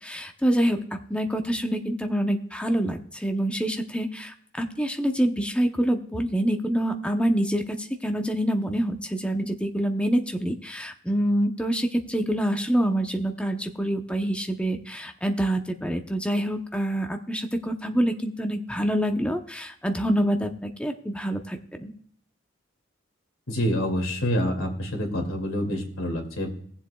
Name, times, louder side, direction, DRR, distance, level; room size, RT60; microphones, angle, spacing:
voice 1, 0.0-21.9, right 1 dB, 5° left, 5 dB, 0.7 m, -26 dB
voice 2, 23.5-26.5, equal, 85° left, 2 dB, 2.4 m, -27 dB
19.5 x 7.5 x 2.3 m, 0.62 s
head